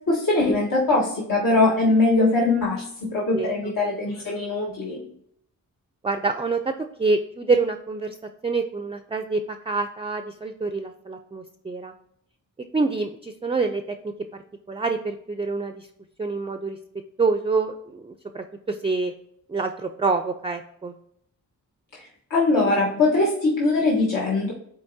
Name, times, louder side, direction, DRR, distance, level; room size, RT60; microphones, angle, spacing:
voice 1, 0.1-5.0 22.3-24.5, left 2 dB, 70° left, -5 dB, 1.3 m, -21 dB
voice 2, 3.3-3.7 6.0-8.2 8.4-11.9 12.7-14.0 14.7-15.9 16.2-16.8 17.2-19.1 19.5-20.9, right 3 dB, 15° right, 7 dB, 0.4 m, -26 dB
10.5 x 4.1 x 2.7 m, 0.73 s
cardioid pair, 75°, 35 cm